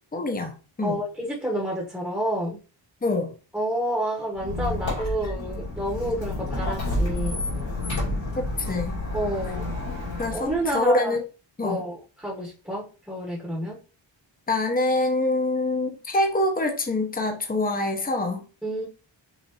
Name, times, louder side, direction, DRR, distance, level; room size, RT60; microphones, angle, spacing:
voice 1, 0.1-1.0 3.0-3.3 8.4-9.0 10.2-11.2 11.6-11.8 14.5-18.4, left 2 dB, 20° left, 4 dB, 0.9 m, -25 dB
voice 2, 0.8-2.6 3.5-7.4 9.1-9.6 10.3-11.1 11.6-13.8 18.6-18.8, right 1 dB, 5° right, -3 dB, 1.2 m, -29 dB
Squeak, 4.3-10.8, left 2 dB, 75° left, 2.4 m, -30 dB
5.6 x 2.8 x 3.0 m, 0.34 s
cardioid pair, 80°, 47 cm